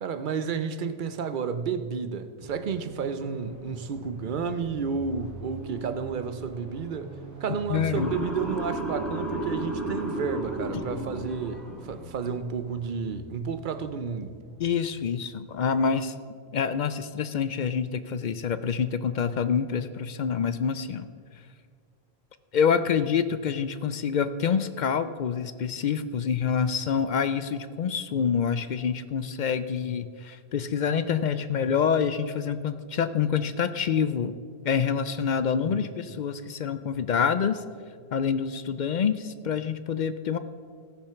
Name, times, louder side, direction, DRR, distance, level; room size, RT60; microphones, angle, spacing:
voice 1, 0.0-7.2 7.4-14.3 35.6-35.9, right 6 dB, 55° right, 0.8 m, -31 dB
sound 1, 2.4-14.8, right 2 dB, 15° right, 1.8 m, -44 dB
voice 2, 7.7-8.1 10.7-10.8 14.6-16.1 16.5-21.1 22.5-34.3 34.6-37.6 38.1-40.4, left 7 dB, 55° left, 0.5 m, -27 dB
Motor vehicle (road) / Siren, 7.9-12.1, right 1 dB, ahead, 2.5 m, -33 dB
15.0 x 6.9 x 5.8 m
omnidirectional pair, 1.1 m